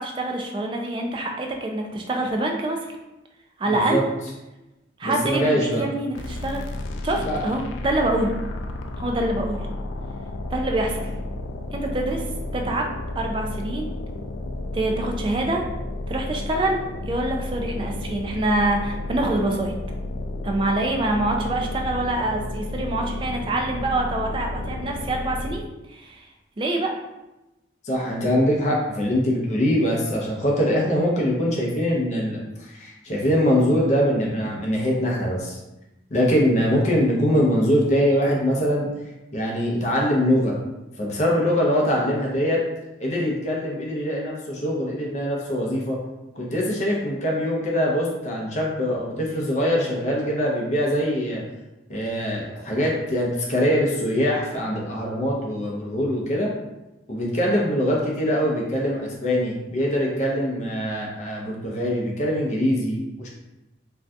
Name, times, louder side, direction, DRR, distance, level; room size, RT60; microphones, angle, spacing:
voice 1, 0.0-2.8 3.6-4.0 5.0-6.6 7.0-8.3 9.0-9.6 10.5-11.1 11.7-12.2 12.5-13.9 14.7-15.6 16.1-16.8 17.1-19.7 20.4-26.3 26.6-26.9, right 2 dB, 25° right, 2 dB, 0.3 m, -25 dB
voice 2, 3.7-4.0 5.0-5.8 7.2-7.4 27.8-35.6 36.1-38.9 39.3-40.5 41.0-42.6 43.0-46.0 46.4-51.4 51.9-56.5 57.1-63.3, equal, 40° left, -2 dB, 0.6 m, -23 dB
sound 1, 6.1-25.8, left 2 dB, 85° left, 0.3 m, -32 dB
2.6 x 2.3 x 3.4 m, 0.99 s
head